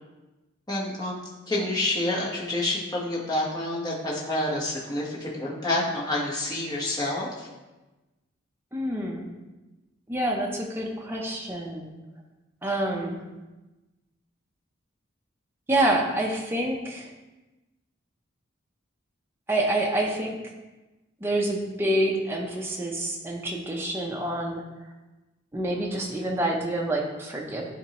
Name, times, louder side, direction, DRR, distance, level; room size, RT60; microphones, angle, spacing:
voice 1, 0.7-1.2 1.5-7.5, left 1 dB, 20° left, -5 dB, 1.2 m, -28 dB
voice 2, 8.7-9.3 10.1-11.9 12.6-13.2 15.7-17.1 19.5-20.4 21.2-24.6 25.5-27.7, right 1 dB, 10° right, -1 dB, 0.7 m, -27 dB
9.9 x 3.6 x 3.0 m, 1.1 s
head